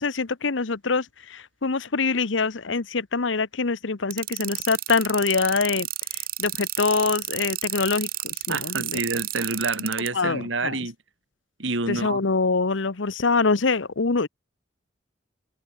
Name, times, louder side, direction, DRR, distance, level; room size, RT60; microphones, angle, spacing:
voice 1, 0.0-5.9 6.4-9.0 10.1-10.8 11.9-14.3, left 4 dB, 75° left, 1.0 m, -24 dB
sound 1, 4.1-10.1, right 14 dB, 50° right, 7.7 m, -30 dB
voice 2, 8.5-10.9 11.6-12.2, right 3 dB, 75° right, 2.7 m, -28 dB
head